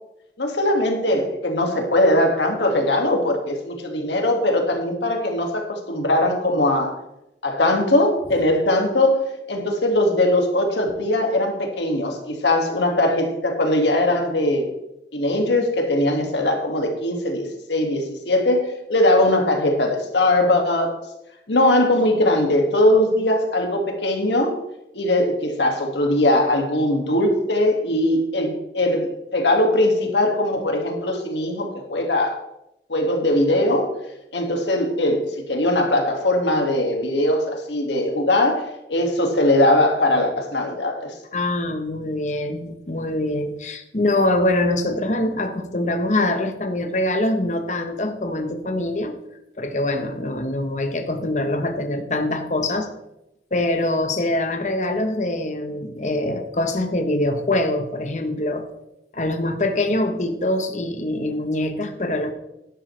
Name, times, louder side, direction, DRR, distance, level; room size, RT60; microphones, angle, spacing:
voice 1, 0.4-6.9 7.4-9.2 9.5-14.7 15.1-20.9 21.5-24.6 24.9-32.4 32.9-33.9 34.3-41.1, left 1 dB, 80° left, 2 dB, 2.1 m, -20 dB
voice 2, 41.3-49.2 49.6-52.9 53.5-58.6 59.1-62.3, left 1 dB, 40° left, 6 dB, 1.0 m, -24 dB
11.5 x 11.5 x 3.3 m, 0.88 s
head